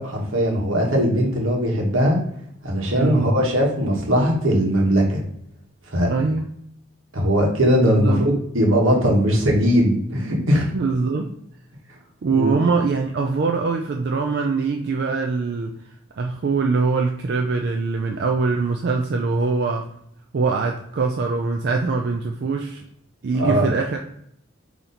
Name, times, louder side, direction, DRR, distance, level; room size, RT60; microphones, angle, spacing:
voice 1, 0.0-2.2 2.6-5.2 5.9-6.1 7.1-10.7 12.3-12.5 23.4-23.7, equal, 80° right, 0 dB, 1.2 m, -19 dB
voice 2, 2.9-3.3 6.1-6.5 7.8-8.2 10.7-11.3 12.2-15.8 16.2-19.9 20.3-22.8 23.2-24.0, right 4 dB, 50° right, 2 dB, 0.3 m, -23 dB
4.1 x 2.9 x 3.9 m, 0.72 s
head